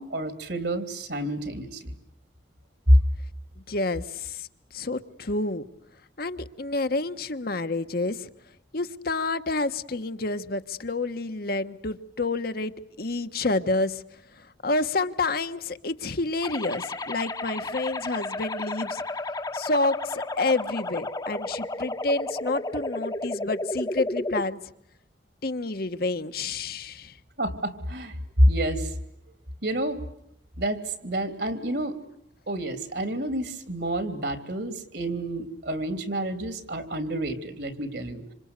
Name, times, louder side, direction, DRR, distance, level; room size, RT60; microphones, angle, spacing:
voice 1, 0.0-2.0 2.9-3.0 27.4-28.9 29.6-30.0 30.6-32.0 32.5-38.2, equal, 65° right, 9 dB, 3.2 m, -27 dB
voice 2, 3.7-4.5 4.7-5.6 6.2-8.3 8.7-12.7 13.0-14.0 14.6-19.0 19.5-24.6 25.4-27.1, left 2 dB, 55° left, 9 dB, 1.3 m, -29 dB
sound 1, 16.4-24.4, left 2 dB, 20° left, 1.1 m, -32 dB
27.0 x 26.5 x 8.2 m, 0.75 s
head